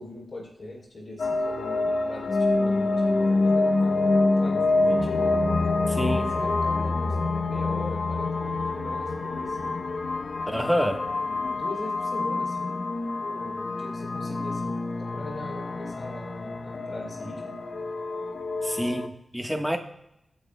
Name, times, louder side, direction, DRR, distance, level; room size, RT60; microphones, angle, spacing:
voice 1, 0.0-5.2 6.1-7.2 7.4-9.9 11.3-17.6, left 2 dB, 45° left, -1 dB, 3.5 m, -40 dB
sound 1, 1.2-19.1, left 3 dB, 70° left, 1.1 m, -26 dB
voice 2, 5.9-6.2 10.5-11.1 18.6-19.8, equal, ahead, 4 dB, 1.2 m, -27 dB
24.0 x 9.7 x 2.2 m, 0.82 s
wide cardioid pair, 135°, 0 cm